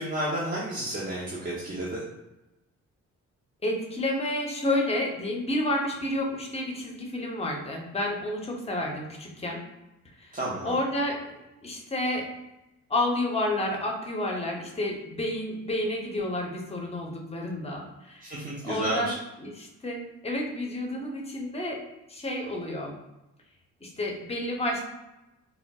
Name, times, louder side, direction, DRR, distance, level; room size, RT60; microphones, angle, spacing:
voice 1, 0.0-2.0 10.3-10.8 18.2-19.1, right 1 dB, 30° right, -7 dB, 0.6 m, -31 dB
voice 2, 3.6-9.6 10.2-10.4 10.6-11.2 11.6-12.3 12.9-21.8 22.1-22.9 23.8-24.8, left 1 dB, 20° left, 0 dB, 0.6 m, -30 dB
3.8 x 2.0 x 2.2 m, 0.98 s
cardioid pair, 90°, 30 cm